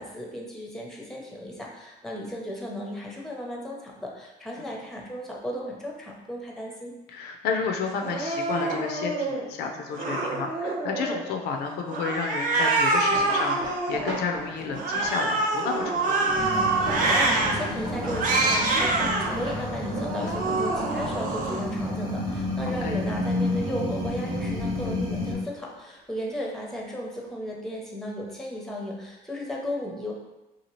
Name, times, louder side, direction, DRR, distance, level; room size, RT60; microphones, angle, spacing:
voice 1, 0.0-6.9 17.1-30.1, equal, ahead, -2 dB, 0.5 m, -35 dB
voice 2, 7.1-16.3 22.7-23.0, left 5 dB, 75° left, 4 dB, 0.4 m, -31 dB
Cat, 8.0-9.4 9.9-11.3 11.9-14.2 14.7-17.5 18.1-19.3 19.8-21.6, right 2 dB, 55° right, 0.6 m, -26 dB
sound 1, 12.8-22.4 22.7-23.7 24.1-25.4 26.2-26.5 26.9-27.0, right 1 dB, 90° right, 0.8 m, -39 dB
sound 2, 16.3-25.3, left 1 dB, 20° right, 0.8 m, -31 dB
2.8 x 2.3 x 2.9 m, 1.0 s
cardioid pair, 110°, 17 cm